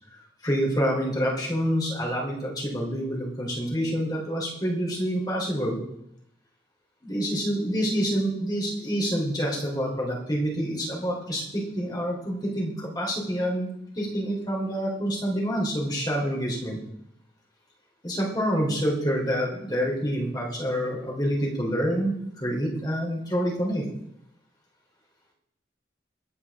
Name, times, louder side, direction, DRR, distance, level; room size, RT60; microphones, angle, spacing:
voice 1, 0.4-5.8 7.0-13.7 14.0-16.8 18.0-23.9, equal, 20° left, -2 dB, 3.6 m, -27 dB
23.0 x 8.7 x 3.7 m, 0.76 s
head